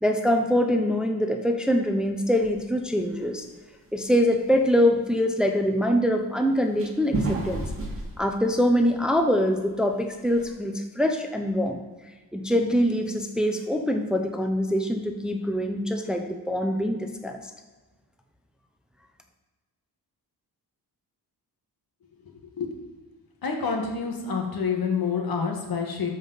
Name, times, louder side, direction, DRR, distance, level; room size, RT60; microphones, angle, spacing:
voice 1, 0.0-3.4 3.9-7.6 8.2-11.8 12.3-17.4, equal, ahead, 4 dB, 0.7 m, -24 dB
sound 1, 2.4-2.7 3.0-3.5 3.9-4.0 4.4-4.5 6.8-9.2 9.6-9.7 10.1-10.5, right 2 dB, 35° right, 2.0 m, -31 dB
voice 2, 23.4-26.1, left 5 dB, 65° left, 2 dB, 1.6 m, -27 dB
13.0 x 5.3 x 4.0 m, 1.3 s
cardioid pair, 100°, 38 cm